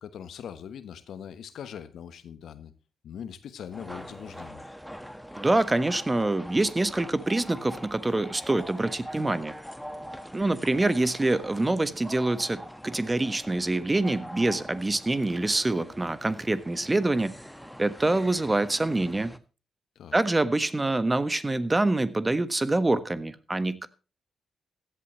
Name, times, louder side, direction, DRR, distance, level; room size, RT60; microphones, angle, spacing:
voice 1, 0.0-2.7 3.0-4.6 20.0-20.2, left 8 dB, 70° left, 1.1 m, -41 dB
sound 1, 3.7-19.4, equal, ahead, 1.6 m, -43 dB
voice 2, 5.4-9.5 10.3-17.3 17.8-19.3 20.1-23.9, right 2 dB, 25° right, 1.4 m, -25 dB
16.0 x 11.5 x 3.1 m
hypercardioid pair, 40°, 0 cm